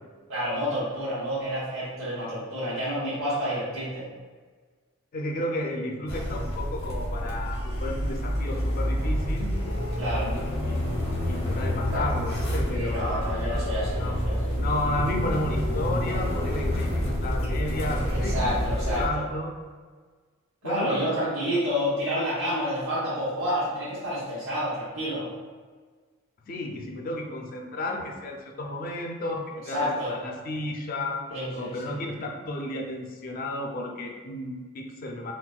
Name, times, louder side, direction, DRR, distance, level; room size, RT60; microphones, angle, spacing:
voice 1, 0.3-4.1 10.0-10.3 11.9-12.0 12.7-14.5 18.3-19.2 20.6-25.3 29.7-30.2 31.3-32.0, equal, 85° right, -11 dB, 0.9 m, -29 dB
voice 2, 5.1-9.5 10.3-10.8 11.3-13.3 14.0-14.2 14.6-16.9 17.2-19.5 20.6-21.1 26.5-31.2 31.5-35.3, left 1 dB, 45° left, 2 dB, 0.4 m, -32 dB
sound 1, 6.1-19.1, equal, 85° left, 0.8 m, -28 dB
4.0 x 2.1 x 2.3 m, 1.5 s
head